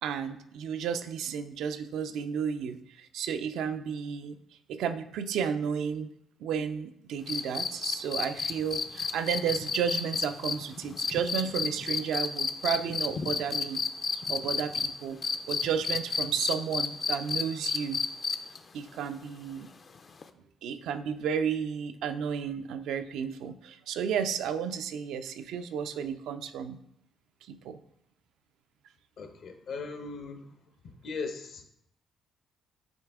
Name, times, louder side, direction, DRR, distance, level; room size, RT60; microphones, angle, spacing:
voice 1, 0.0-4.4 4.7-6.1 6.4-13.8 14.3-15.2 15.5-18.0 18.7-19.7 20.6-26.8 27.5-27.8, right 7 dB, 85° right, 9 dB, 0.4 m, -32 dB
sound 1, 7.3-14.9 15.2-18.6 20.2-20.3, left 5 dB, 40° left, 0.4 m, -30 dB
voice 2, 29.2-30.5 31.0-31.7, left 4 dB, 65° left, 6 dB, 0.9 m, -38 dB
8.7 x 3.4 x 3.5 m, 0.74 s
cardioid pair, 90°, 0 cm